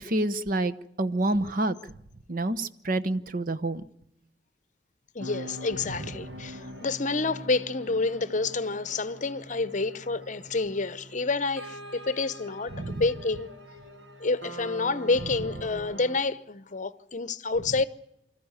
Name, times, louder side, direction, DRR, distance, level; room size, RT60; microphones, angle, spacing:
voice 1, 0.0-1.8 2.3-3.8 12.7-13.0, right 2 dB, 50° right, 0.9 m, -28 dB
voice 2, 5.1-11.8 12.1-13.5 14.2-17.8, left 3 dB, 45° left, 0.8 m, -28 dB
sound 1, 5.2-16.2, equal, 75° right, 2.5 m, -43 dB
25.5 x 14.0 x 9.8 m
head